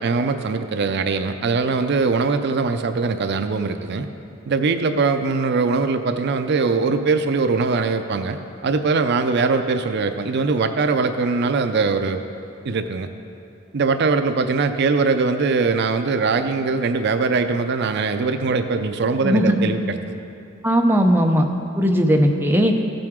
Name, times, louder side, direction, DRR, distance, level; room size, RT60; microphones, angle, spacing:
voice 1, 0.0-4.1 4.5-12.2 12.6-13.1 13.7-20.2, right 4 dB, 55° right, 8 dB, 0.5 m, -21 dB
voice 2, 19.2-19.6 20.6-21.5 21.8-22.7, equal, 10° right, 3 dB, 0.7 m, -17 dB
15.5 x 7.7 x 3.6 m, 2.6 s
head